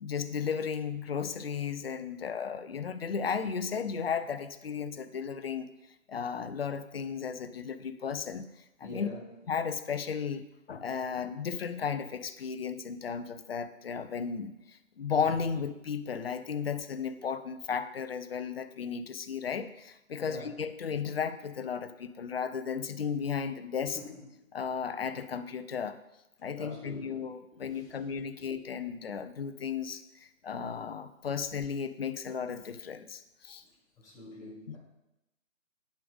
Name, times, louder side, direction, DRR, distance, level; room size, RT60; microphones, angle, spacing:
voice 1, 0.0-5.7 6.1-8.5 8.8-9.1 9.5-24.0 24.5-26.0 26.4-30.0 30.4-33.6 34.7-34.8, left 6 dB, 45° left, 12 dB, 0.6 m, -34 dB
voice 2, 8.8-9.2 20.2-20.6 23.9-24.2 26.6-27.3 27.6-27.9 28.4-28.5 34.0-34.8, left 2 dB, 5° left, -5 dB, 1.5 m, -45 dB
10.5 x 5.1 x 5.2 m, 0.91 s
figure-of-eight pair, 150°, 41 cm